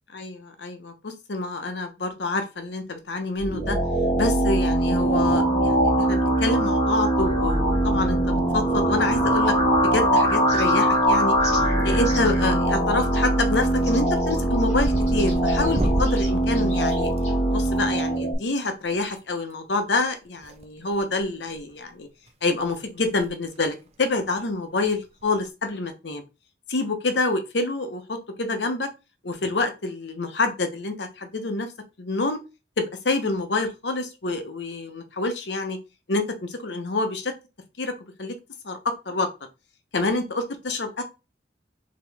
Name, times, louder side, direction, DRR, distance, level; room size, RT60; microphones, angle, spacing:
voice 1, 0.1-3.8 4.2-9.5 9.9-11.3 11.8-17.1 17.5-22.1 22.4-26.2 26.7-28.9 29.2-31.7 32.0-32.4 32.8-35.8 36.1-37.3 37.8-37.9 38.2-38.4 38.6-39.3 39.9-41.0, left 3 dB, 75° left, 6 dB, 0.9 m, -27 dB
sound 1, 3.4-18.3, right 1 dB, 20° left, 1.5 m, -22 dB
sound 2, 10.5-11.0 11.4-11.6 12.0-12.4 13.1-13.3 13.8-17.4, left 2 dB, 40° left, 1.8 m, -40 dB
sound 3, 10.9-11.5 11.8-12.3 12.7-13.0 13.3-17.7 19.1-19.2 20.4-21.2 21.5-21.7 22.3-22.4 22.6-22.7 23.1-23.3 23.6-23.7 25.2-25.5, right 1 dB, 35° right, 0.5 m, -33 dB
5.0 x 2.9 x 3.4 m, 0.28 s
head